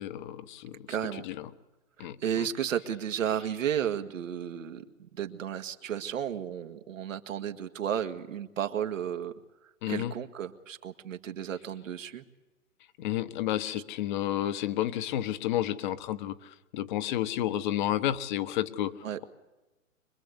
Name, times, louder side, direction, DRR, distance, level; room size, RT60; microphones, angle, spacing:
voice 1, 0.0-0.9 1.3-1.5 2.0-2.2 9.8-10.1 13.0-19.0, left 12 dB, 35° left, 13 dB, 1.2 m, -31 dB
voice 2, 0.9-1.3 2.0-9.3 9.6-12.2 13.6-13.8 19.0-19.2, right 9 dB, 75° right, 6 dB, 1.9 m, -33 dB
24.5 x 21.0 x 8.1 m, 1.1 s
hypercardioid pair, 150°, 39 cm